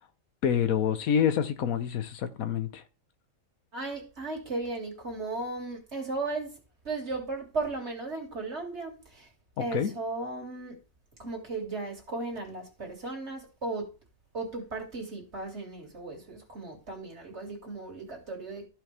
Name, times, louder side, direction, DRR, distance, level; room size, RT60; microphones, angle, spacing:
voice 1, 0.4-2.8 9.7-9.9, left 8 dB, 90° left, 1.4 m, -27 dB
voice 2, 3.7-6.5 6.8-9.3 9.6-10.8 11.2-13.9 14.3-18.7, right 3 dB, 50° right, 2.8 m, -36 dB
14.0 x 5.4 x 3.4 m
omnidirectional pair, 1.5 m